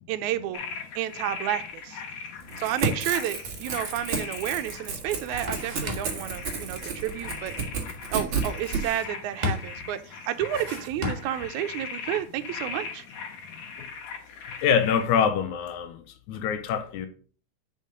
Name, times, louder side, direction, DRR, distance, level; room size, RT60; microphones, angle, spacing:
voice 1, 0.1-0.6 1.0-2.0 2.6-7.5 8.1-13.0, right 12 dB, 80° right, 2.0 m, -31 dB
sound 1, 0.5-15.1, left 5 dB, 70° left, 2.6 m, -40 dB
Crackle / Tearing, 2.4-8.8, right 5 dB, 45° right, 2.2 m, -31 dB
sound 2, 5.5-6.3 8.5-9.2 9.4-9.9 10.4-11.5, left 2 dB, 30° right, 0.8 m, -34 dB
voice 2, 14.6-16.0 16.3-17.1, left 7 dB, 85° left, 2.1 m, -24 dB
5.5 x 5.5 x 6.3 m
omnidirectional pair, 3.4 m